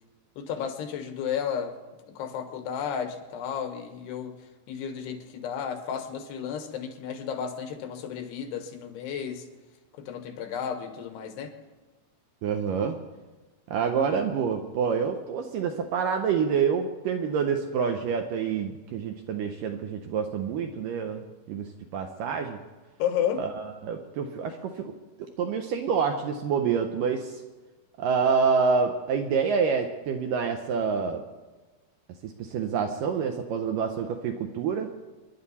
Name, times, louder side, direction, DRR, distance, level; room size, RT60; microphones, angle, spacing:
voice 1, 0.4-1.8 2.1-4.3 4.7-9.4 10.0-11.5 23.0-23.4, left 8 dB, 80° left, 7 dB, 3.4 m, -32 dB
voice 2, 12.4-13.0 13.7-21.2 21.5-22.6 23.4-24.9 25.4-27.4 28.0-31.2 32.2-34.9, right 6 dB, 75° right, 5 dB, 2.1 m, -27 dB
28.0 x 11.0 x 4.2 m, 1.2 s
omnidirectional pair, 4.7 m